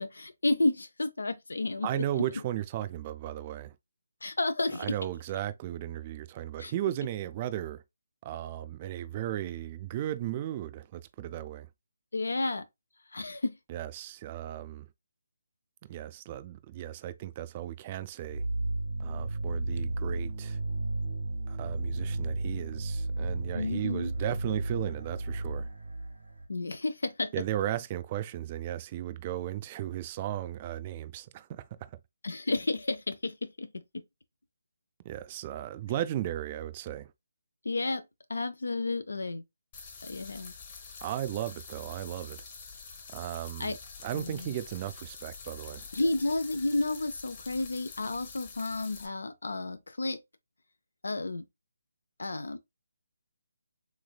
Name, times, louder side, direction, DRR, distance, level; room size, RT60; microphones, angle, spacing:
voice 1, 0.0-2.2 4.2-4.9 6.6-6.7 12.1-12.6 13.1-13.5 23.5-24.1 26.5-27.3 32.2-34.0 37.6-38.0 38.3-39.4 40.0-40.5 43.6-43.8 44.1-44.6 45.9-50.2 51.0-51.4 52.2-52.6, left 2 dB, 80° left, 0.4 m, -31 dB
voice 2, 1.8-3.8 4.8-7.8 8.2-11.7 13.7-14.9 15.9-18.5 19.0-20.6 21.5-25.7 27.3-32.0 35.0-37.1 41.0-42.4 43.1-45.9, right 12 dB, 30° right, 0.3 m, -35 dB
sound 1, 18.3-26.5, right 2 dB, 85° right, 1.4 m, -33 dB
sound 2, 39.7-49.1, left 5 dB, 30° left, 0.9 m, -47 dB
3.3 x 3.1 x 2.2 m
figure-of-eight pair, 155°, 0 cm